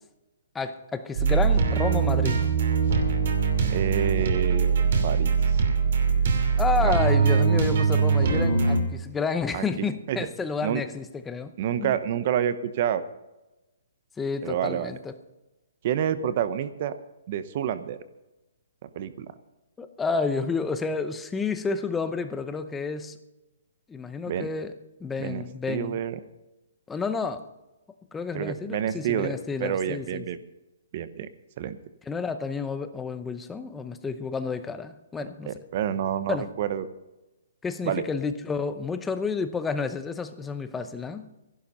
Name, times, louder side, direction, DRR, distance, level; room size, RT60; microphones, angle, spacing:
voice 1, 0.5-2.4 6.6-11.5 11.8-12.0 14.2-15.1 19.8-23.2 23.9-24.7 25.0-26.0 26.9-27.4 28.1-30.3 32.1-35.5 36.3-36.4 37.6-41.3, left 4 dB, 5° left, 9 dB, 0.7 m, -30 dB
sound 1, 1.2-8.8, right 5 dB, 50° right, 2.7 m, -22 dB
voice 2, 3.7-5.3 6.8-7.0 9.5-10.3 10.6-10.8 11.6-13.0 14.4-14.9 15.8-17.0 17.3-18.0 18.8-19.3 24.3-24.5 25.2-26.2 28.3-30.4 30.9-31.3 31.6-31.8 35.5-36.9 37.8-38.0, right 9 dB, 35° right, 13 dB, 0.9 m, -28 dB
13.5 x 11.5 x 5.5 m, 1.0 s
hypercardioid pair, 170°, 0 cm